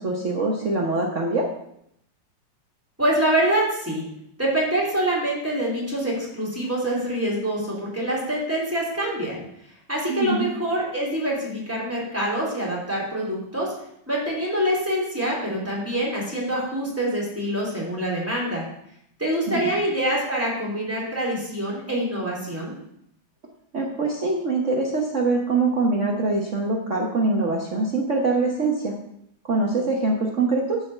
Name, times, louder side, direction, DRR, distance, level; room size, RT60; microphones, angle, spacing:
voice 1, 0.0-1.5 10.1-10.5 19.5-19.7 23.7-28.9 29.5-30.8, right 3 dB, 45° right, -1 dB, 1.3 m, -23 dB
voice 2, 3.0-4.0 4.4-9.4 9.9-13.7 14.1-18.6 19.2-22.7, right 1 dB, 5° right, -5 dB, 3.6 m, -25 dB
11.0 x 4.7 x 7.8 m, 0.75 s
omnidirectional pair, 2.2 m